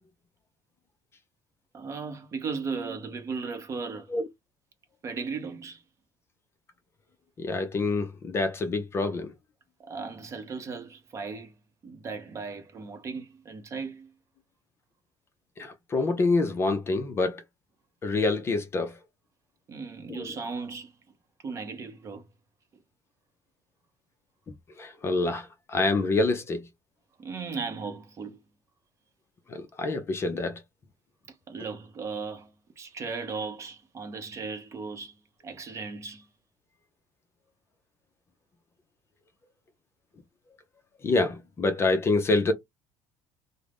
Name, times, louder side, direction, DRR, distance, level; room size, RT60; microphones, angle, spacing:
voice 1, 1.7-4.1 5.0-5.8 9.8-11.5 11.8-14.1 19.7-20.9 21.4-22.3 27.2-28.4 31.5-35.2 35.4-36.3, right 4 dB, 25° right, 0.7 m, -36 dB
voice 2, 7.4-9.3 15.6-17.4 18.0-19.0 20.1-20.3 24.8-26.6 29.5-30.6 41.0-42.5, left 3 dB, 20° left, 0.5 m, -26 dB
3.6 x 2.1 x 3.4 m
cardioid pair, 175°, 11 cm